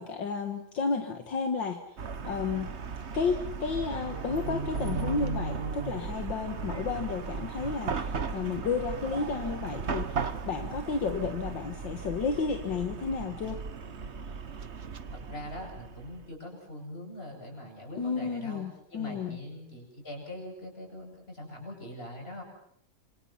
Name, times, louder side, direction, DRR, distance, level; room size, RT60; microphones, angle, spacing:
voice 1, 0.0-2.0 2.2-2.7 3.1-13.6 18.0-19.4, left 5 dB, 65° left, 5 dB, 2.3 m, -32 dB
Chatter / Car passing by / Traffic noise roadway noise, 2.0-16.3, right 5 dB, 40° right, 1.3 m, -36 dB
voice 2, 15.1-18.6 18.9-22.4, left 1 dB, 30° left, 1 dB, 8.4 m, -42 dB
27.0 x 26.5 x 5.8 m, 0.68 s
omnidirectional pair, 2.2 m